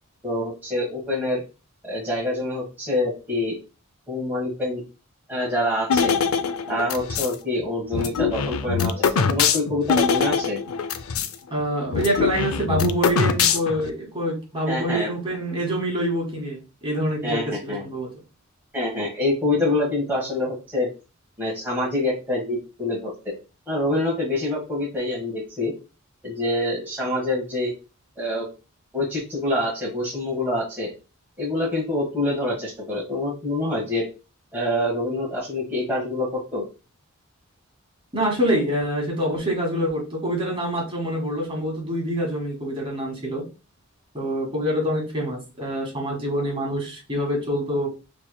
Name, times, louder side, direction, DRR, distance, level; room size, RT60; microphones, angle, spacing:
voice 1, 0.2-1.4 1.8-3.6 4.1-4.8 5.3-6.1 6.7-10.6 14.7-15.1 17.2-17.8 18.7-20.9 21.4-23.3 23.7-25.7 26.2-27.7 28.2-28.5 28.9-30.9 31.4-34.0 34.5-36.6, left 1 dB, 10° right, -6 dB, 1.4 m, -26 dB
sound 1, 5.9-7.3 7.9-11.3 11.6-11.7 11.9-13.9, left 6 dB, 80° left, 0.5 m, -23 dB
voice 2, 11.5-18.1 38.1-43.4 44.1-47.9, equal, 25° right, -1 dB, 1.8 m, -26 dB
5.5 x 3.2 x 2.2 m, 0.30 s
head